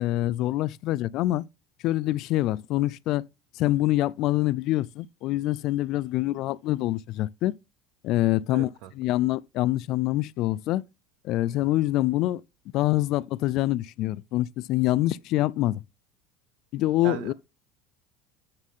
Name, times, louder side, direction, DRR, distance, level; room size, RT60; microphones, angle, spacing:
voice 1, 0.0-1.4 1.8-3.2 3.6-7.5 8.0-8.7 9.0-10.8 11.2-12.4 12.7-15.8 16.7-17.3, left 16 dB, 60° left, 0.3 m, -25 dB
voice 2, 8.5-8.9 17.0-17.3, right 14 dB, 70° right, 0.8 m, -37 dB
9.0 x 3.7 x 5.6 m
supercardioid pair, 110°, 0 cm